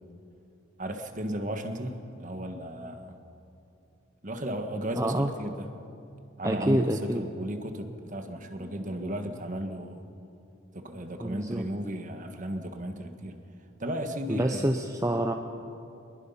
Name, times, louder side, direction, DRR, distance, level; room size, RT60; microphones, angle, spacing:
voice 1, 0.8-3.1 4.2-5.7 6.4-10.0 10.7-13.4 13.8-14.7, right 1 dB, 40° right, 6 dB, 1.5 m, -34 dB
voice 2, 4.9-5.3 6.4-7.2 11.2-11.6 14.3-15.3, right 1 dB, 15° right, 4 dB, 0.7 m, -27 dB
24.5 x 21.5 x 5.7 m, 2.7 s
head